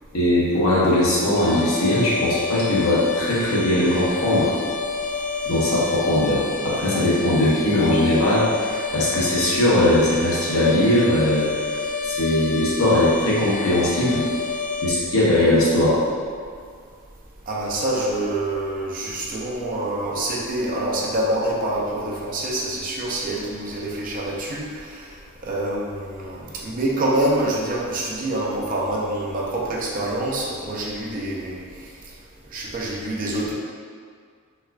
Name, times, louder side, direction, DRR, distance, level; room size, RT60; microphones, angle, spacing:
voice 1, 0.1-4.5 5.4-14.3 14.8-16.0, left 1 dB, 75° left, -7 dB, 0.9 m, -20 dB
sound 1, 1.4-14.9, left 4 dB, 35° left, 0.3 m, -29 dB
voice 2, 17.5-25.2 25.4-31.9 32.5-33.5, right 1 dB, 40° right, -3 dB, 0.5 m, -26 dB
4.2 x 2.2 x 2.4 m, 2.1 s
head